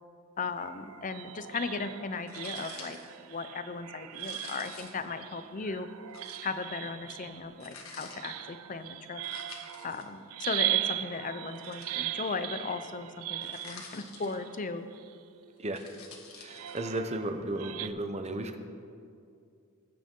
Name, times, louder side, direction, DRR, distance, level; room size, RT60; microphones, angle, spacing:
voice 1, 0.4-3.0 3.3-5.9 6.4-9.2 9.8-14.9, left 4 dB, 40° left, 10 dB, 0.6 m, -37 dB
sound 1, 0.6-15.5 16.5-17.9, right 14 dB, 85° right, 0.5 m, -38 dB
sound 2, 2.3-3.1 4.1-5.1 6.1-6.5 7.6-8.2 9.2-10.0 11.5-12.3 13.4-14.6 15.6-16.8, left 4 dB, 75° left, 1.7 m, -48 dB
voice 2, 16.4-18.6, right 1 dB, 30° right, 7 dB, 0.8 m, -34 dB
19.5 x 8.9 x 3.8 m, 2.4 s
head